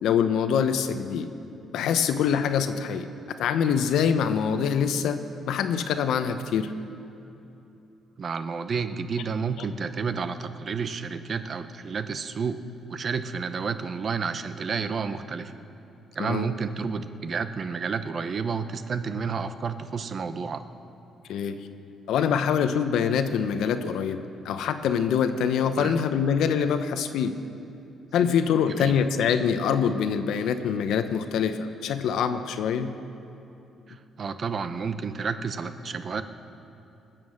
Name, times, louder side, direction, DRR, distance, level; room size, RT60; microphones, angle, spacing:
voice 1, 0.0-1.3 1.7-3.1 3.4-6.7 16.2-16.5 21.3-21.6 22.1-24.2 24.4-27.4 28.1-32.9, left 7 dB, 80° left, 9 dB, 0.7 m, -24 dB
voice 2, 8.2-12.6 12.9-15.5 16.2-20.6 25.7-25.9 28.7-28.9 33.9-36.2, right 5 dB, 45° right, 11 dB, 0.8 m, -30 dB
20.5 x 7.6 x 6.4 m, 2.9 s
cardioid pair, 90°, 0 cm